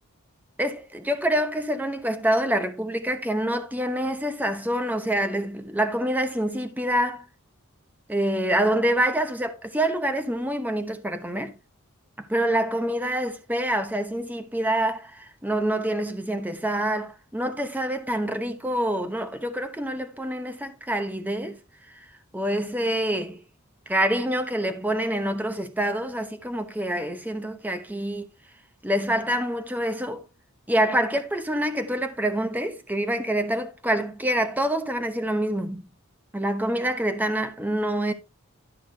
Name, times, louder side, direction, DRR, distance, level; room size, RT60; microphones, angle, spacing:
voice 1, 0.6-7.2 8.1-11.5 12.3-21.6 22.3-23.4 23.9-28.3 28.8-30.2 30.7-35.8 36.3-38.1, right 1 dB, 10° right, 0.9 m, -26 dB
12.5 x 6.0 x 3.3 m
head